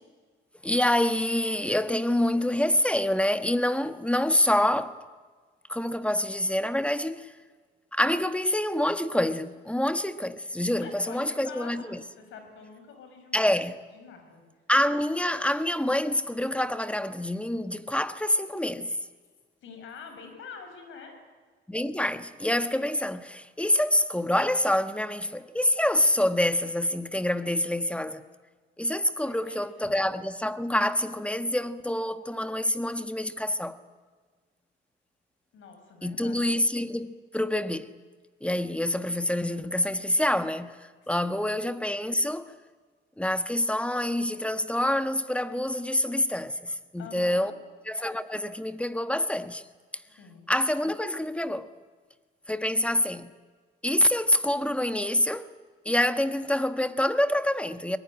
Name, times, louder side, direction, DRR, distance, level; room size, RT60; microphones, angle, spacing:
voice 1, 0.6-5.0 5.7-7.3 7.9-12.0 13.3-13.8 14.7-19.0 21.7-28.2 28.8-33.8 36.0-37.9 38.4-42.5 43.2-47.5 47.9-49.6 49.9-50.0 50.5-51.7 52.5-53.3 53.8-55.5 55.8-58.0, left 1 dB, 5° left, 1.3 m, -26 dB
voice 2, 10.8-13.5 13.9-14.4 19.6-21.2 29.2-29.6 35.5-36.6 41.0-41.1 41.5-41.6 47.0-47.5 50.0-50.4, left 5 dB, 80° left, 6.5 m, -46 dB
22.5 x 19.5 x 9.9 m
cardioid pair, 90°, 20 cm